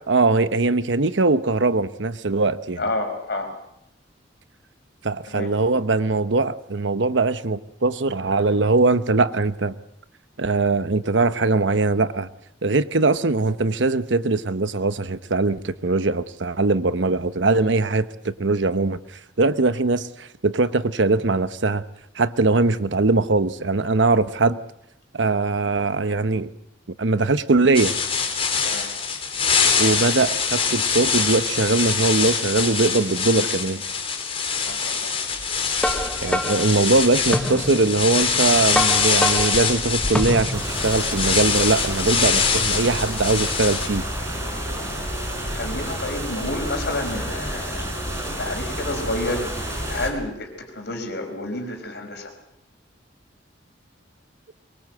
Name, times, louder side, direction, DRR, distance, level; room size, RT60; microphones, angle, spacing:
voice 1, 0.1-2.8 5.0-9.8 10.4-12.3 12.6-21.8 22.1-24.6 25.1-26.5 27.0-28.0 29.8-33.8 36.2-44.3, right 3 dB, 75° right, 13 dB, 1.0 m, -21 dB
voice 2, 2.8-3.5 5.3-5.5 28.6-28.9 34.7-35.1 45.4-47.9 48.4-52.3, left 2 dB, 65° left, 4 dB, 5.2 m, -30 dB
sound 1, 27.7-43.9, left 6 dB, 30° left, 4.1 m, -24 dB
sound 2, 35.4-40.8, left 1 dB, 5° left, 1.2 m, -27 dB
sound 3, 40.5-50.1, equal, 15° right, 5.5 m, -29 dB
23.5 x 22.0 x 7.8 m, 0.79 s
head